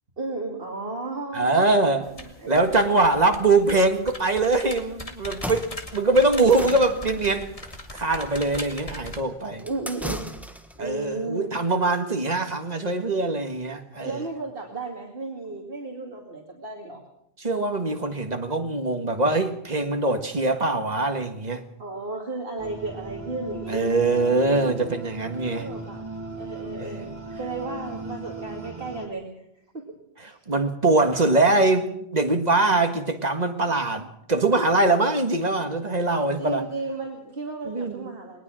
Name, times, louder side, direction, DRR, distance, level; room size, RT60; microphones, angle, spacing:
voice 1, 0.2-2.8 9.6-10.5 10.8-11.5 14.0-17.0 21.8-23.9 24.6-25.0 25.5-26.0 26.4-27.1 27.4-29.5 29.7-30.0 30.3-30.5 36.4-38.4, right 3 dB, 60° right, 2.6 m, -34 dB
voice 2, 1.3-2.1 2.5-7.6 7.9-9.7 10.8-14.2 17.4-21.6 23.7-25.7 26.8-27.1 30.5-36.6 37.7-38.1, right 2 dB, 40° right, 1.8 m, -23 dB
sound 1, 2.0-9.2, left 1 dB, 35° left, 2.3 m, -40 dB
sound 2, 5.2-10.9, equal, ahead, 1.4 m, -38 dB
sound 3, 22.6-29.1, right 2 dB, 25° right, 2.6 m, -37 dB
21.5 x 19.5 x 6.3 m
omnidirectional pair, 1.1 m